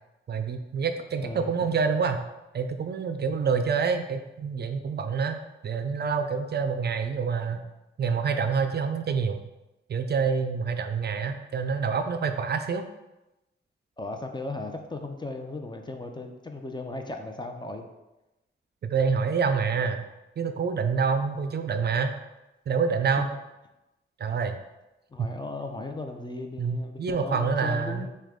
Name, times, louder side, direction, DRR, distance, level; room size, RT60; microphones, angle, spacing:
voice 1, 0.3-2.2 2.5-7.6 8.0-9.4 9.9-12.9 18.8-20.1 20.4-22.1 22.7-23.3 24.2-24.6 25.2-25.3 26.6-28.1, right 5 dB, 55° right, 7 dB, 0.4 m, -27 dB
voice 2, 14.0-17.8 25.1-28.1, left 2 dB, 20° left, 4 dB, 0.5 m, -36 dB
6.1 x 2.3 x 3.6 m, 0.99 s
wide cardioid pair, 90°, 20 cm